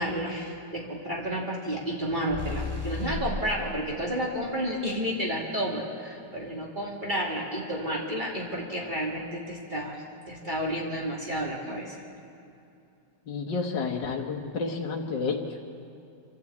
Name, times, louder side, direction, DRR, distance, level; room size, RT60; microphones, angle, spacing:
voice 1, 0.0-12.0, equal, 25° right, -3 dB, 2.5 m, -31 dB
sound 1, 2.3-3.5, left 3 dB, 5° right, 3.4 m, -33 dB
voice 2, 13.3-15.6, left 4 dB, 75° left, 0 dB, 1.9 m, -30 dB
27.0 x 11.5 x 8.4 m, 2.7 s
omnidirectional pair, 1.9 m